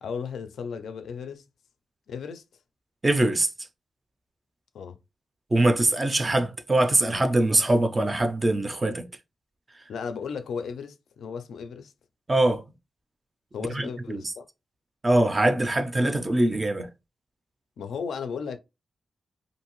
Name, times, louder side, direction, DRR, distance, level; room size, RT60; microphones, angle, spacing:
voice 1, 0.0-1.4 2.1-2.4 4.7-5.0 9.9-11.9 13.5-14.4 17.8-18.6, left 6 dB, 85° left, 0.4 m, -35 dB
voice 2, 3.0-3.5 5.5-9.1 12.3-12.6 13.7-14.2 15.0-16.9, right 1 dB, 20° right, 0.3 m, -23 dB
2.7 x 2.5 x 2.9 m
wide cardioid pair, 165°, 0 cm